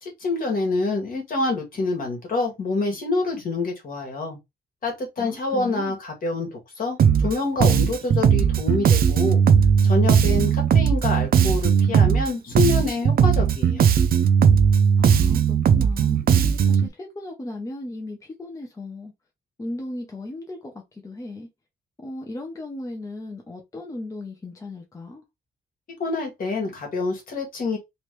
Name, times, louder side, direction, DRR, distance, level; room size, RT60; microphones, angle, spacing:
voice 1, 0.0-4.4 4.8-9.4 9.8-13.9 26.0-27.8, left 3 dB, 50° left, 1.6 m, -27 dB
voice 2, 5.2-6.0 15.0-19.1 19.6-21.5 22.0-25.2, left 2 dB, 20° left, 0.6 m, -36 dB
Bass guitar, 7.0-7.4 7.6-12.3 12.6-16.9, right 7 dB, 55° right, 0.4 m, -18 dB
3.1 x 3.1 x 3.1 m
wide cardioid pair, 155°, 18 cm